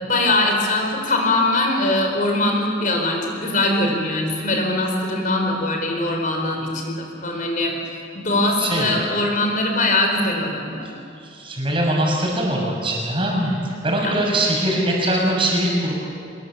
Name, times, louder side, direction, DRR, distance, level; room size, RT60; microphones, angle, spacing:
voice 1, 0.0-7.8 8.1-10.9 14.0-14.1, left 2 dB, 45° left, 2 dB, 4.5 m, -21 dB
voice 2, 8.6-8.9 11.2-15.9, right 1 dB, 30° right, -2 dB, 6.4 m, -22 dB
25.0 x 21.5 x 7.6 m, 2.5 s
head